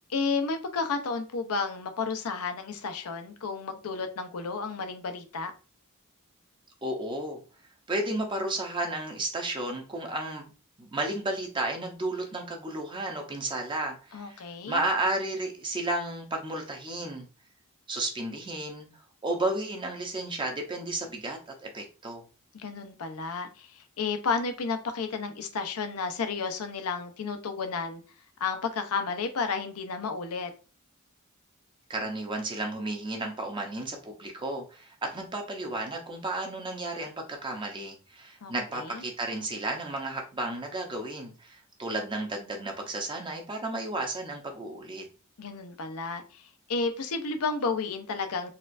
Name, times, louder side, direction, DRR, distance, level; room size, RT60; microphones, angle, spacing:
voice 1, 0.1-5.5 14.1-14.8 22.5-28.0 28.4-30.5 38.4-39.0 45.4-48.5, left 4 dB, 85° left, 0.6 m, -32 dB
voice 2, 6.8-7.4 7.9-10.4 10.8-17.3 17.9-18.9 19.2-22.2 31.9-45.0, right 2 dB, 20° right, 0.6 m, -33 dB
4.2 x 2.4 x 2.5 m
head